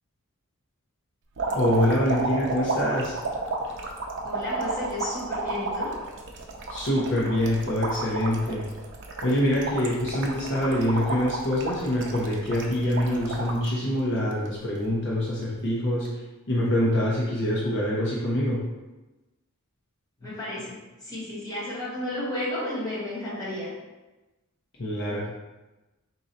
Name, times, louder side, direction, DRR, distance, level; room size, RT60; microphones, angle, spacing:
sound 1, 1.4-13.7 14.2-14.9 15.9-16.1, right 3 dB, 55° right, 0.6 m, -32 dB
voice 1, 1.5-3.1 6.7-8.7 9.2-16.1 16.5-18.6 24.8-25.3, left 1 dB, 60° left, -5 dB, 0.9 m, -25 dB
voice 2, 4.2-5.9 20.2-23.7, left 1 dB, 15° left, -8 dB, 1.5 m, -33 dB
3.8 x 2.9 x 4.1 m, 1.1 s
head